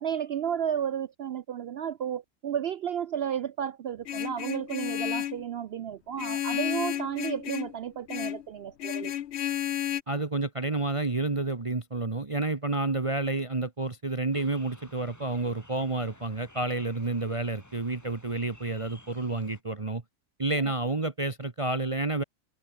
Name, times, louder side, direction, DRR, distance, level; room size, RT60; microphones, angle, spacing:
voice 1, 0.0-9.1, right 9 dB, 70° right, 0.6 m, -32 dB
Vehicle horn car horn honking, 4.1-5.4 6.2-7.7 8.1-8.4 8.8-10.0, left 11 dB, 60° left, 0.8 m, -32 dB
voice 2, 10.1-20.0 20.4-22.2, right 2 dB, 25° right, 1.1 m, -30 dB
sound 1, 14.3-19.6, left 1 dB, 10° left, 2.0 m, -54 dB
omnidirectional pair, 1.5 m